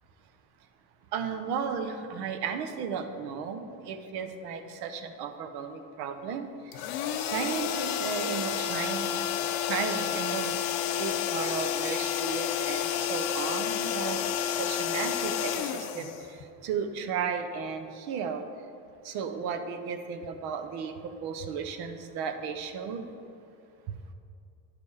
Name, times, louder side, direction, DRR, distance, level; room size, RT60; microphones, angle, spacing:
voice 1, 1.1-6.5 7.3-9.2 9.6-10.5 11.0-16.1 16.6-18.4 19.0-20.9 21.2-23.1, right 6 dB, 65° right, 7 dB, 0.9 m, -34 dB
sound 1, 6.7-16.7, left 9 dB, 70° left, 0.7 m, -30 dB
9.8 x 5.1 x 4.7 m, 2.5 s
cardioid pair, 115°, 40 cm